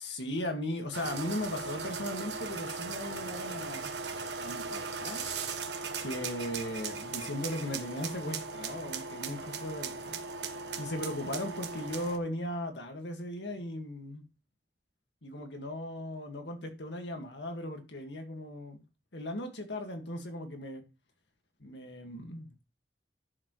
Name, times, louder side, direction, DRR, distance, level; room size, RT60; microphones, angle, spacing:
voice 1, 0.0-3.9 4.4-5.2 6.0-10.2 10.8-14.2 15.2-18.8 19.1-20.8 21.6-22.5, left 1 dB, 80° left, 1.9 m, -37 dB
sound 1, 0.9-12.2, right 4 dB, 75° right, 1.2 m, -38 dB
11.0 x 7.0 x 3.2 m
head